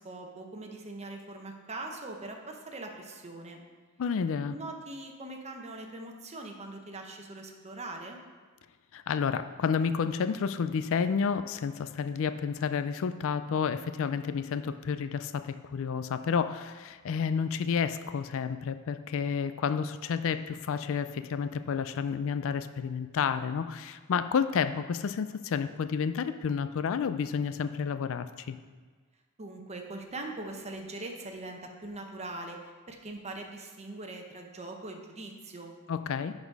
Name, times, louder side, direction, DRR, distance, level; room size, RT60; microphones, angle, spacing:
voice 1, 0.0-3.6 4.5-8.2 29.4-35.7, right 2 dB, 30° right, 3 dB, 0.9 m, -41 dB
voice 2, 4.0-4.5 8.9-28.6 35.9-36.3, left 6 dB, 65° left, 11 dB, 0.4 m, -30 dB
10.5 x 4.1 x 4.7 m, 1.4 s
head